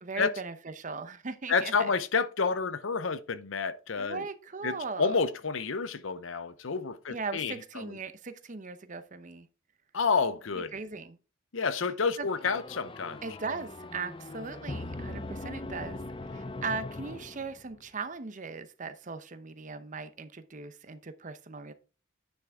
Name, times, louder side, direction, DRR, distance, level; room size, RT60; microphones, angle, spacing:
voice 1, 0.0-1.9 4.0-5.1 7.1-9.5 10.7-11.2 12.2-12.3 13.2-16.0 16.3-21.7, right 4 dB, 40° right, 0.8 m, -38 dB
voice 2, 1.5-4.2 4.6-8.0 9.9-10.7 11.5-13.2, left 5 dB, 85° left, 0.7 m, -29 dB
sound 1, 12.3-17.9, left 2 dB, 25° left, 0.5 m, -41 dB
9.8 x 6.1 x 3.5 m
head